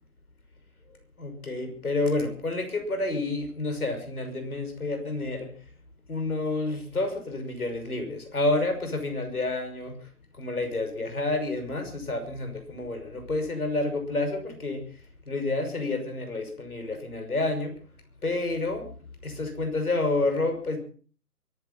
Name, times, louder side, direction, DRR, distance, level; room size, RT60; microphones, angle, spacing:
voice 1, 1.2-5.5 6.1-10.0 10.4-14.8 15.3-17.7 18.2-18.9 19.2-20.8, left 2 dB, 65° left, 6 dB, 5.9 m, -29 dB
23.5 x 9.4 x 5.7 m, 0.43 s
figure-of-eight pair, 170°, 47 cm